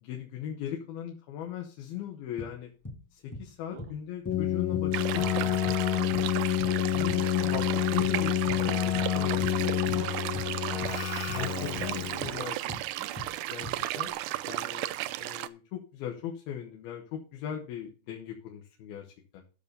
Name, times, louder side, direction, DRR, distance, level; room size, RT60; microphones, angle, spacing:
voice 1, 0.0-2.7 3.1-5.8 6.6-9.8 11.3-12.8 13.5-13.7 14.0-14.1 14.4-14.9 15.2-19.1 19.3-19.4, left 10 dB, 80° left, 2 dB, 3.2 m, -39 dB
sound 1, 2.4-3.1 3.3-3.5 3.8-4.5 4.7-5.9 6.1-6.8 7.1-7.7 8.0-8.2 8.5-9.1 9.4-10.6 10.8-12.0 12.2-13.4 13.6-14.1, left 1 dB, 5° left, 1.5 m, -42 dB
Keyboard (musical), 4.3-12.4, left 12 dB, 50° left, 1.6 m, -28 dB
sound 2, 4.9-15.5, right 15 dB, 85° right, 1.8 m, -34 dB
voice 2, 9.3-10.8 11.6-13.1, right 5 dB, 50° right, 6 dB, 1.7 m, -46 dB
13.0 x 6.9 x 4.0 m, 0.36 s
omnidirectional pair, 4.3 m